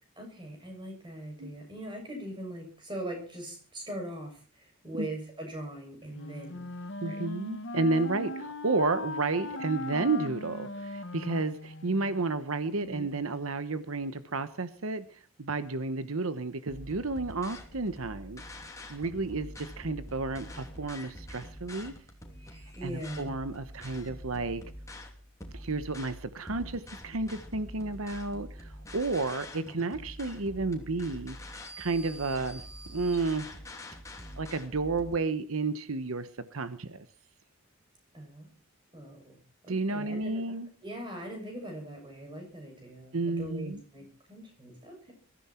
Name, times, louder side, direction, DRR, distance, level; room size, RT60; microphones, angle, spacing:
voice 1, 0.2-6.7 7.0-7.2 8.1-8.4 12.8-13.3 22.7-23.4 29.6-29.9 38.1-38.5 38.9-39.4 39.6-45.1, right 1 dB, 20° right, 2 dB, 7.0 m, -41 dB
Wind instrument woodwind instrument, 6.1-12.2, left 2 dB, 55° left, 1.4 m, -39 dB
voice 2, 7.0-18.4 18.9-21.9 22.8-24.6 25.5-33.5 34.4-37.1 39.7-40.7 43.1-43.8, right 3 dB, 75° right, 12 dB, 1.0 m, -32 dB
sound 1, 16.7-35.2, left 1 dB, 15° left, 2.9 m, -45 dB
22.5 x 14.5 x 4.4 m, 0.41 s
head